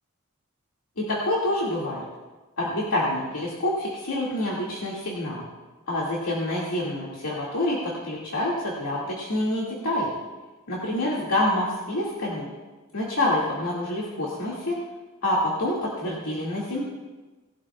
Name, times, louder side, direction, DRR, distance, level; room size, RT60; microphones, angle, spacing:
voice 1, 1.0-2.0 2.6-5.4 5.9-10.1 10.7-12.5 12.9-14.8 15.2-16.8, left 1 dB, 85° left, -6 dB, 2.2 m, -27 dB
19.5 x 12.0 x 2.4 m, 1.3 s
head